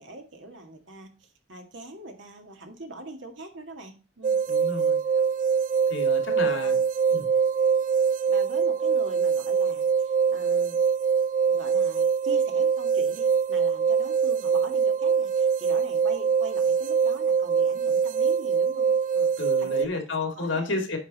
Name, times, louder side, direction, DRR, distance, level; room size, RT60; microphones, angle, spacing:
voice 1, 0.0-4.4 4.6-4.8 6.4-6.8 7.1-7.3 8.3-10.8 11.5-20.0 20.4-20.8, right 2 dB, 75° right, 3 dB, 2.1 m, -42 dB
sound 1, 4.2-19.9, right 6 dB, 40° right, 0.3 m, -24 dB
voice 2, 4.5-5.0 5.9-6.8 7.1-7.3 19.4-21.0, left 3 dB, 80° left, 3 dB, 2.4 m, -31 dB
9.3 x 5.5 x 4.1 m, 0.34 s
head